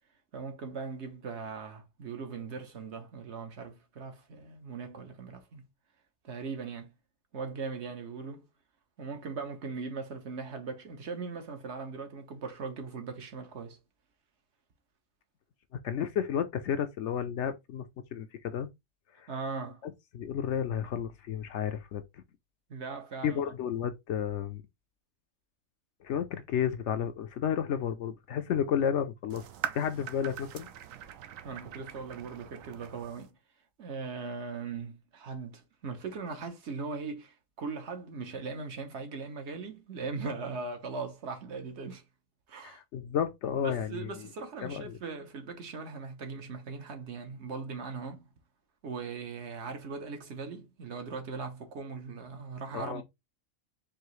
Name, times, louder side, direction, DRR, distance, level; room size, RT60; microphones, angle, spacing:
voice 1, 0.3-5.6 6.2-6.9 7.3-8.5 9.0-13.8 19.3-19.8 22.7-23.4 31.4-33.3 33.8-42.0 42.5-42.8 43.6-48.3 48.8-53.0, right 4 dB, 60° right, 1.1 m, -39 dB
voice 2, 15.8-17.8 18.1-18.7 19.2-19.3 19.8-22.0 23.2-24.6 26.0-29.5 29.7-30.7 42.6-44.3 44.6-45.0 52.7-53.0, left 8 dB, 65° left, 0.8 m, -32 dB
sound 1, 29.3-33.3, right 10 dB, 80° right, 1.0 m, -42 dB
4.8 x 2.7 x 3.1 m
omnidirectional pair, 1.4 m